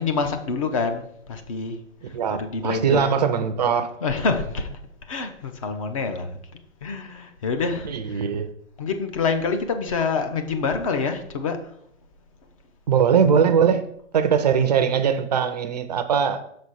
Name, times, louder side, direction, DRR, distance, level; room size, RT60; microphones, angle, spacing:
voice 1, 0.0-1.8 2.3-3.1 3.7-4.8 5.1-6.4 6.8-8.3 8.8-11.6, left 4 dB, 25° left, 0.7 m, -27 dB
voice 2, 2.1-3.9 7.8-8.5 12.9-13.8 14.1-16.4, right 7 dB, 35° right, 0.5 m, -21 dB
6.5 x 4.1 x 6.3 m
hypercardioid pair, 165°, 37 cm